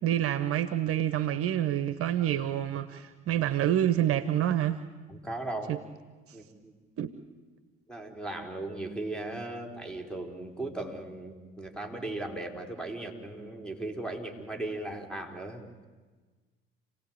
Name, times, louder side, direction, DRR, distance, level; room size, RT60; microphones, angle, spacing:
voice 1, 0.0-4.8 5.7-5.8 7.0-7.1, right 11 dB, 50° right, 11 dB, 1.1 m, -27 dB
voice 2, 5.1-5.8 6.3-6.7 7.9-15.6, right 2 dB, 5° left, 3 dB, 4.3 m, -37 dB
28.5 x 17.5 x 8.9 m, 1.4 s
figure-of-eight pair, 55°, 29 cm